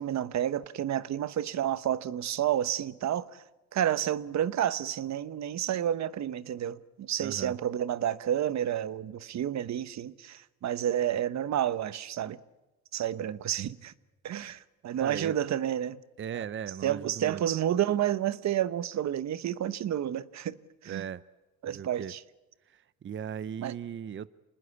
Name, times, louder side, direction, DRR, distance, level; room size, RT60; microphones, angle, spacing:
voice 1, 0.0-3.4 3.7-12.4 12.9-13.9 14.2-16.0 16.3-16.4 16.8-20.6 20.8-21.0 21.6-22.2 23.6-23.7, right 11 dB, 65° right, 1.1 m, -30 dB
voice 2, 7.2-7.5 15.0-15.4 16.2-17.4 20.9-21.2 21.7-22.1 22.7-24.3, right 8 dB, 40° right, 0.7 m, -37 dB
27.0 x 20.0 x 8.2 m
cardioid pair, 90°, 30 cm